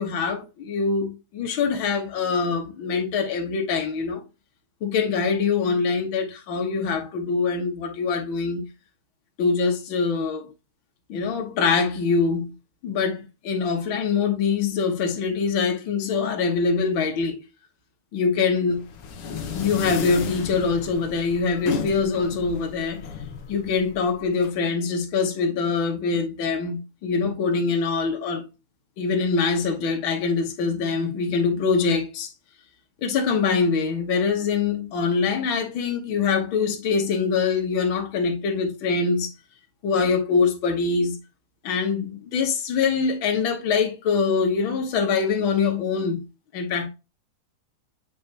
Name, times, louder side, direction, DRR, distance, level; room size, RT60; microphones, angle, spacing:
voice 1, 0.0-4.2 4.8-8.6 9.4-10.5 11.1-12.5 12.8-17.4 18.1-18.8 19.5-23.0 23.5-28.4 29.0-32.3 33.0-39.3 39.8-41.2 41.6-46.2 46.5-46.9, left 5 dB, 50° left, 1.8 m, -24 dB
sound 1, 18.7-24.5, left 5 dB, 65° left, 1.5 m, -34 dB
7.3 x 4.7 x 2.8 m
omnidirectional pair, 3.5 m